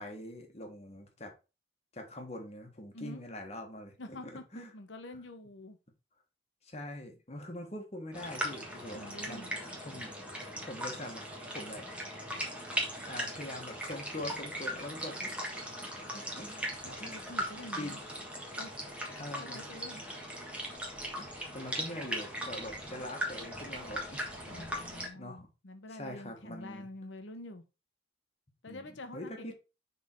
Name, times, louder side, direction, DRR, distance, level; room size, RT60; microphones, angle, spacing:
voice 1, 0.0-1.3 1.9-4.7 6.6-9.0 9.3-10.1 10.4-11.2 11.5-11.9 13.1-15.4 15.9-17.3 17.8-18.0 19.2-19.6 21.2-24.8 25.1-25.5 25.9-26.9 28.7-29.5, left 1 dB, 35° left, 1.4 m, -44 dB
voice 2, 2.9-3.2 4.0-5.8 8.9-9.6 16.8-18.0 18.6-18.7 19.1-20.0 24.4-27.6 28.6-29.5, left 2 dB, 75° left, 1.0 m, -47 dB
sound 1, 8.1-25.1, equal, 5° right, 1.3 m, -39 dB
6.3 x 3.7 x 4.5 m
head